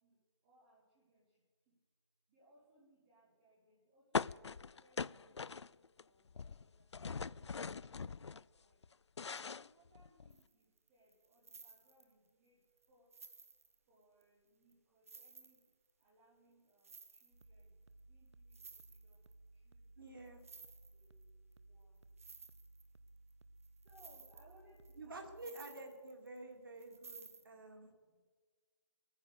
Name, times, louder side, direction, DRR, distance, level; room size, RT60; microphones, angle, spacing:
voice 1, 0.0-1.8 2.3-5.6 6.0-8.8 9.2-13.1 13.9-15.7 16.0-19.2 19.5-20.2 20.9-22.0 23.7-25.8 26.4-26.5 27.0-28.2, right 1 dB, 5° right, -6 dB, 0.7 m, -70 dB
sound 1, 4.1-6.0 6.3-8.4 8.8-10.4, left 5 dB, 75° left, 0.4 m, -41 dB
sound 2, 10.3-10.5 10.8-12.3 12.8-12.9 13.1-14.2 14.7-14.8 15.1-16.1 16.7-17.6 18.0-18.1 18.3-19.3 20.3-21.2 21.5-21.6 22.0-23.3 23.6-26.4 26.8-27.5, right 4 dB, 30° right, 1.0 m, -57 dB
sound 3, 17.3-25.5, right 2 dB, 80° right, 0.9 m, -61 dB
voice 2, 20.0-20.4 25.0-27.9, right 2 dB, 50° right, 2 dB, 2.3 m, -50 dB
19.5 x 9.8 x 6.5 m, 1.5 s
figure-of-eight pair, 175°, 15 cm